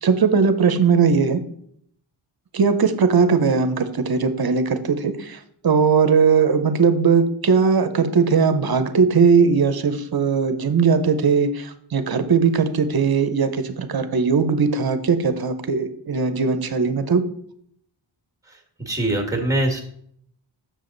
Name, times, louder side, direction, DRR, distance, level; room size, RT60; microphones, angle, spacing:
voice 1, 0.0-1.4 2.5-17.2, right 5 dB, 50° right, 10 dB, 0.8 m, -19 dB
voice 2, 18.8-19.8, right 1 dB, 5° right, 1 dB, 1.7 m, -22 dB
7.0 x 6.4 x 3.9 m, 0.68 s
wide cardioid pair, 90°, 48 cm